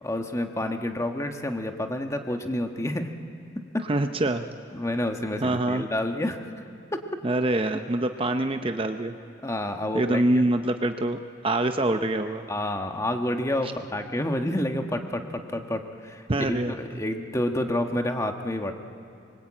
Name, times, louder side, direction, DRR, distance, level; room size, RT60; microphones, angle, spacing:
voice 1, 0.0-3.1 3.7-3.9 4.7-6.6 6.9-7.0 9.4-10.4 12.5-18.7, left 1 dB, 15° left, 5 dB, 1.3 m, -29 dB
voice 2, 3.9-4.4 5.4-5.9 7.2-9.2 9.9-11.2 11.4-12.5 13.6-13.7 16.3-17.0, right 1 dB, 30° right, 7 dB, 0.6 m, -25 dB
24.5 x 23.0 x 8.8 m, 2.5 s
head